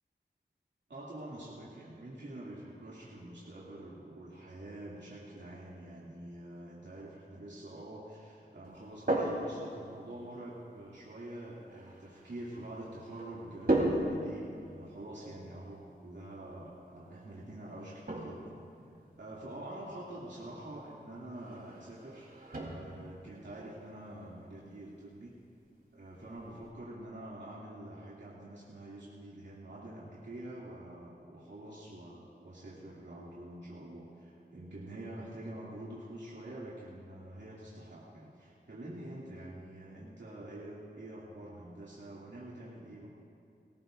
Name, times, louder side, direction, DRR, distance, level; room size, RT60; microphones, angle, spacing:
voice 1, 0.9-18.4 19.2-25.3 25.9-43.1, right 1 dB, 75° right, -8 dB, 2.6 m, -46 dB
sound 1, 8.6-26.7, right 1 dB, 55° right, 3.7 m, -39 dB
25.0 x 13.5 x 2.6 m, 2.5 s
wide cardioid pair, 55°, 19 cm